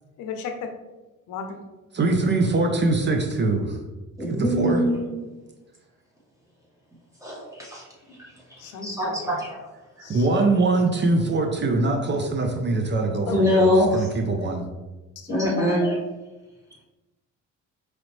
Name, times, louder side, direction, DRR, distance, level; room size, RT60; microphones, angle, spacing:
voice 1, 0.2-0.5 1.3-1.6 4.5-4.6 8.6-9.3 10.0-10.2 13.3-13.4 15.3-15.7, left 6 dB, 90° left, 5 dB, 0.6 m, -35 dB
voice 2, 1.9-3.8 4.2-4.8 10.1-14.6, right 2 dB, 35° right, 4 dB, 0.6 m, -23 dB
voice 3, 4.2-5.2 7.2-7.8 8.2-9.6 10.0-10.1 13.3-14.1 15.3-16.0, left 1 dB, 10° right, -4 dB, 1.5 m, -23 dB
4.9 x 3.2 x 3.1 m, 1.1 s
cardioid pair, 90°, 30 cm